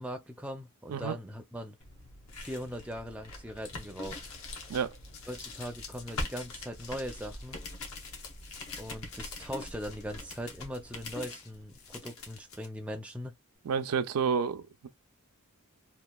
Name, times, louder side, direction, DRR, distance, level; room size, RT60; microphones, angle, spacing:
voice 1, 0.0-1.8 2.4-4.2 5.3-7.6 8.8-13.4, equal, 5° right, 0.4 m, -40 dB
sound 1, 1.8-12.7, left 2 dB, 70° left, 0.9 m, -43 dB
voice 2, 13.7-14.9, right 6 dB, 80° right, 0.4 m, -30 dB
2.9 x 2.3 x 2.2 m
head